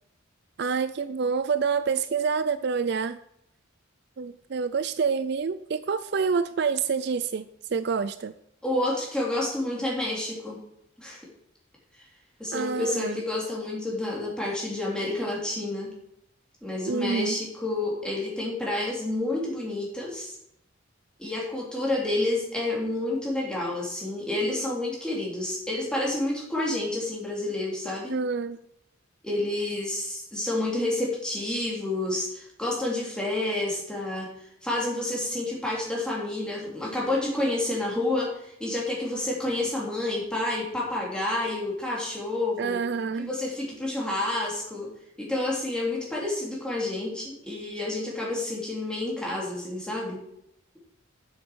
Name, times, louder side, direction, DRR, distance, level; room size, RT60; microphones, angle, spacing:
voice 1, 0.6-3.2 4.2-8.3 12.5-13.2 16.9-17.4 28.1-28.6 42.6-43.3, right 5 dB, 55° right, 13 dB, 0.4 m, -27 dB
voice 2, 8.6-10.6 11.0-11.2 11.9-12.0 12.4-15.9 16.6-20.4 21.2-28.1 29.2-34.3 34.6-42.8 43.2-44.9 45.2-50.2, left 2 dB, 5° left, -4 dB, 3.1 m, -29 dB
8.5 x 8.1 x 6.3 m, 0.76 s
head